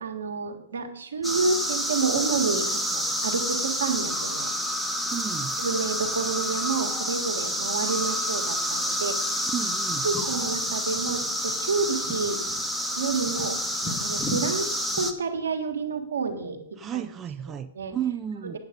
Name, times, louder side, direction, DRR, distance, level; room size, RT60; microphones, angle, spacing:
voice 1, 0.0-4.5 5.6-9.4 10.0-12.4 12.9-13.6 13.8-16.6 16.9-17.1 17.5-17.9 18.4-18.6, right 4 dB, 80° right, 5 dB, 1.5 m, -29 dB
sound 1, 1.2-15.1, equal, ahead, 1.0 m, -28 dB
voice 2, 5.1-5.6 9.5-10.1 16.8-18.6, right 9 dB, 20° right, 9 dB, 0.4 m, -33 dB
8.6 x 8.0 x 5.1 m, 0.78 s
hypercardioid pair, 115°, 0 cm